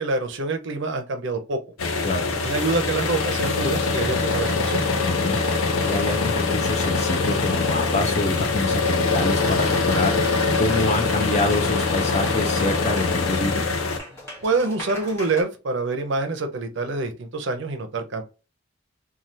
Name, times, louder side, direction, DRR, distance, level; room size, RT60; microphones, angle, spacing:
voice 1, 0.0-1.6 2.4-4.8 14.4-18.2, right 3 dB, 60° right, 0.6 m, -26 dB
sound 1, 1.8-14.0, left 3 dB, 80° left, 0.6 m, -23 dB
voice 2, 5.1-5.4 5.8-13.6, left 2 dB, 30° left, 0.6 m, -26 dB
Applause, 9.4-15.4, left 1 dB, 10° left, 1.6 m, -38 dB
3.2 x 2.3 x 2.7 m
head